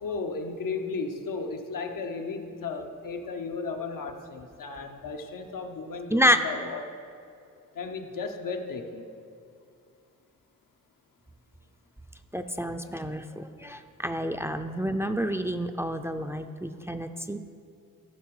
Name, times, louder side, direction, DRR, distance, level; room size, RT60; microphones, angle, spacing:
voice 1, 0.0-6.9 7.7-9.1, left 4 dB, 90° left, 4 dB, 0.9 m, -35 dB
voice 2, 12.3-17.4, equal, 10° right, 8 dB, 0.4 m, -28 dB
14.0 x 5.9 x 4.8 m, 2.4 s
wide cardioid pair, 95°, 32 cm